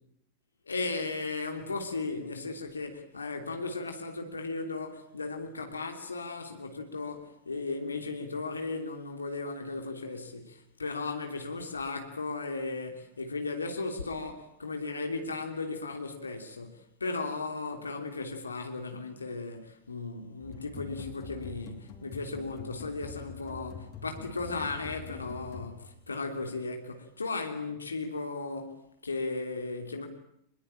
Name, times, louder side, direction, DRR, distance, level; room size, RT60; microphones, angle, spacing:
voice 1, 0.6-30.1, left 3 dB, 75° left, 3.2 m, -36 dB
sound 1, 20.4-26.1, left 5 dB, 35° left, 4.5 m, -45 dB
26.0 x 21.0 x 8.9 m
figure-of-eight pair, 90°, 0 cm